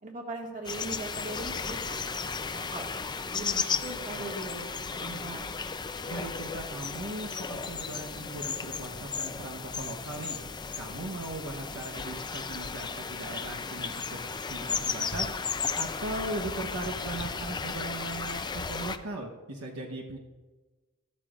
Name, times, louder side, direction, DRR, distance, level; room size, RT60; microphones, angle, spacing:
voice 1, 0.0-2.9 3.2-5.4, right 2 dB, 35° right, 0 dB, 1.7 m, -40 dB
sound 1, 0.6-19.0, left 5 dB, 20° left, 0.4 m, -35 dB
voice 2, 6.1-10.4 10.8-14.2 14.5-15.3 15.8-20.2, right 1 dB, 70° right, 0 dB, 1.0 m, -38 dB
13.0 x 13.0 x 2.5 m, 1.3 s
head